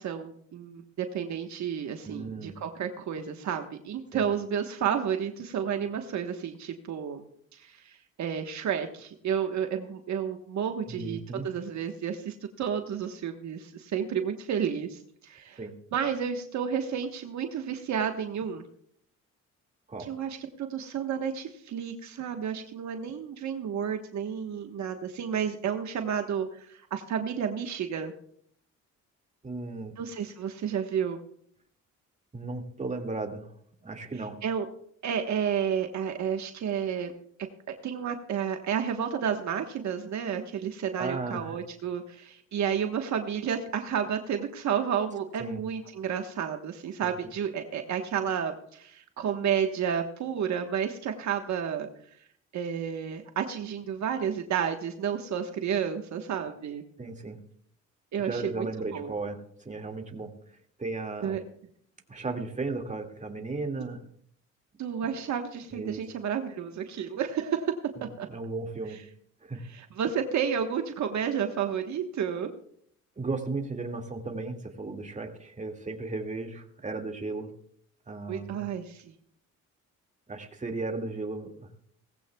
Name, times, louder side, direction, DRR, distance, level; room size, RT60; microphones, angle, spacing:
voice 1, 0.0-7.2 7.5-7.9 8.2-15.6 15.9-18.6 20.1-28.1 30.0-31.2 34.4-34.7 35.0-37.1 37.8-51.9 52.5-56.8 58.1-58.7 58.9-59.1 61.2-61.4 64.8-67.7 68.2-68.3 69.6-72.5 78.3-79.0, right 8 dB, 70° right, 5 dB, 1.3 m, -31 dB
voice 2, 2.0-2.6 4.1-4.3 10.9-11.5 15.6-15.7 19.9-20.1 29.4-29.9 32.3-33.5 33.8-34.4 41.0-41.6 45.4-45.6 47.0-47.1 57.0-57.4 58.2-59.4 59.7-60.3 60.8-61.4 62.1-64.0 65.7-66.0 68.0-69.0 69.4-69.6 73.2-77.5 78.1-78.7 80.3-81.7, right 3 dB, 25° right, 3 dB, 2.1 m, -35 dB
18.5 x 15.5 x 2.3 m, 0.64 s
cardioid pair, 90°, 30 cm